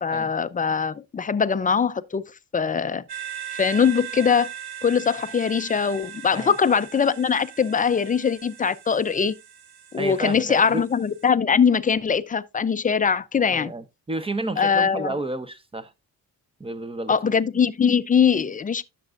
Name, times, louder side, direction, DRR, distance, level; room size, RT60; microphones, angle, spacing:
voice 1, 0.0-3.0 3.6-4.5 4.8-9.3 9.9-13.7 14.6-15.2 17.1-18.8, left 6 dB, 20° left, 0.4 m, -22 dB
sound 1, 3.1-11.3, right 10 dB, 80° right, 1.2 m, -39 dB
voice 2, 10.0-10.8 13.5-15.9 16.6-17.2, right 2 dB, 15° right, 0.7 m, -31 dB
10.5 x 6.9 x 2.5 m
cardioid pair, 105°, 38 cm